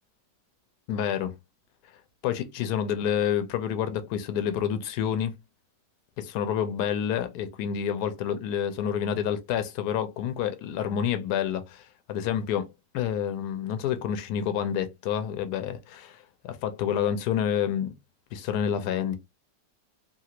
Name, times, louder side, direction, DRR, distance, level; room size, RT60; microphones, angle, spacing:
voice 1, 0.9-1.3 2.2-5.3 6.2-12.7 12.9-17.9 18.3-19.2, left 9 dB, 75° left, 1.1 m, -28 dB
3.2 x 2.4 x 2.8 m
omnidirectional pair, 1.8 m